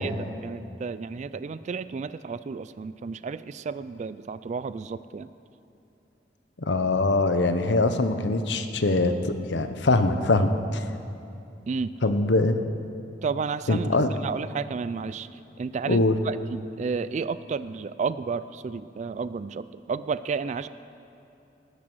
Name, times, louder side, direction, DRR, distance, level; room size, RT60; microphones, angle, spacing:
voice 1, 0.0-5.3 11.7-11.9 13.2-14.0 14.2-20.7, right 5 dB, 40° right, 15 dB, 0.3 m, -32 dB
voice 2, 6.7-10.8 12.0-12.6 13.7-14.1 15.9-16.2, left 2 dB, 75° left, 9 dB, 0.9 m, -23 dB
19.0 x 10.0 x 6.2 m, 2.8 s
head